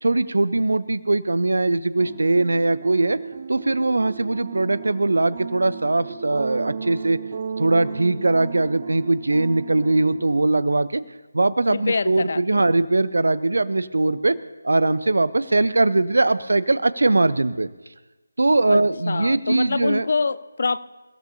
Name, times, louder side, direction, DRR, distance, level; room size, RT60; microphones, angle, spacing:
voice 1, 0.0-3.2 3.5-7.2 7.6-11.0 11.3-14.4 14.6-17.7 18.4-20.1, right 2 dB, 55° right, 16 dB, 0.7 m, -21 dB
sound 1, 2.0-10.8, right 6 dB, 30° right, 0.5 m, -35 dB
voice 2, 11.7-12.6 18.7-18.8 19.1-20.8, left 4 dB, 45° left, 15 dB, 0.6 m, -25 dB
28.5 x 15.5 x 2.8 m, 1.1 s
figure-of-eight pair, 155°, 0 cm